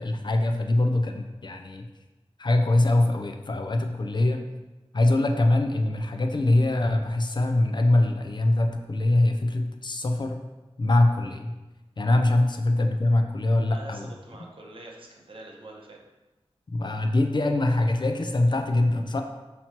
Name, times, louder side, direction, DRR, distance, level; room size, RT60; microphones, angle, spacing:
voice 1, 0.0-1.9 2.4-4.4 4.9-10.4 10.8-11.6 12.0-14.1 16.7-19.2, left 2 dB, 45° left, 5 dB, 0.4 m, -23 dB
voice 2, 13.7-16.0, right 2 dB, 55° right, -1 dB, 0.7 m, -45 dB
4.3 x 2.9 x 2.8 m, 1.1 s
cardioid pair, 50°, 11 cm